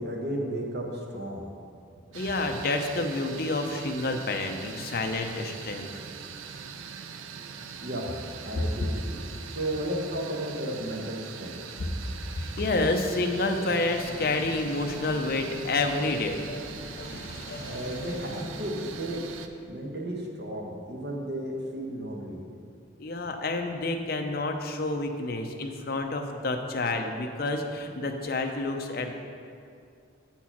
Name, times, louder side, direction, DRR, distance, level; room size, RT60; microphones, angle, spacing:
voice 1, 0.0-1.5 7.8-9.2 9.5-11.6 17.6-19.2 19.7-22.5, right 1 dB, 55° right, -1 dB, 1.0 m, -34 dB
voice 2, 2.1-5.9 8.5-8.6 11.8-11.9 12.3-18.1 18.6-18.7 23.0-29.1, left 2 dB, 50° left, 4 dB, 0.6 m, -29 dB
sound 1, 2.1-19.5, right 6 dB, 85° right, 0.4 m, -42 dB
sound 2, 13.9-19.5, equal, 15° right, 1.2 m, -45 dB
7.4 x 4.4 x 5.8 m, 2.4 s
head